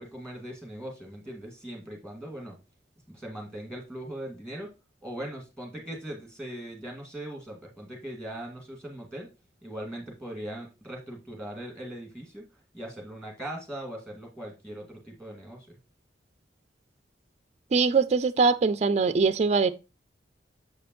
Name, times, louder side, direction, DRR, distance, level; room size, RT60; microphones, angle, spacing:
voice 1, 0.0-2.6 3.1-4.7 5.0-9.3 9.6-12.4 12.7-15.8, right 1 dB, 5° left, 2.1 m, -40 dB
voice 2, 17.7-19.7, right 4 dB, 40° right, 0.4 m, -22 dB
7.1 x 5.1 x 3.0 m
head